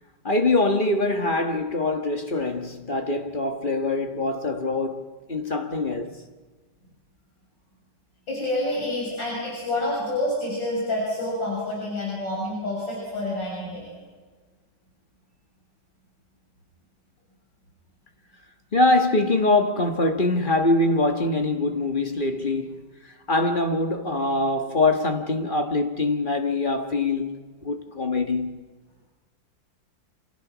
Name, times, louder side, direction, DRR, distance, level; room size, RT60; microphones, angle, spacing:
voice 1, 0.2-6.2 18.7-22.8 23.3-28.6, left 2 dB, 30° left, 1.6 m, -23 dB
voice 2, 8.3-13.9, left 1 dB, 80° left, 7.7 m, -28 dB
28.5 x 27.5 x 6.2 m
omnidirectional pair, 2.0 m